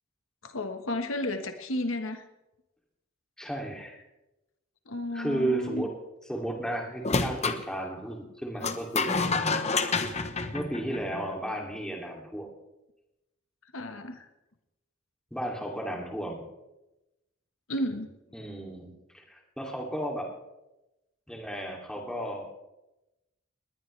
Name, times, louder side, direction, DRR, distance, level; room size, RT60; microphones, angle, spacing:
voice 1, 0.4-2.2 4.9-5.8 13.7-14.3 17.7-18.1, left 1 dB, 75° left, 7 dB, 1.4 m, -32 dB
voice 2, 3.4-4.0 5.1-5.9 6.3-9.2 10.5-12.5 15.3-16.4 18.3-20.3 21.3-22.5, right 1 dB, 5° left, 0 dB, 2.8 m, -34 dB
sound 1, 7.0-7.6 8.6-11.3, left 4 dB, 35° left, 1.0 m, -28 dB
20.0 x 19.5 x 3.4 m, 0.95 s
head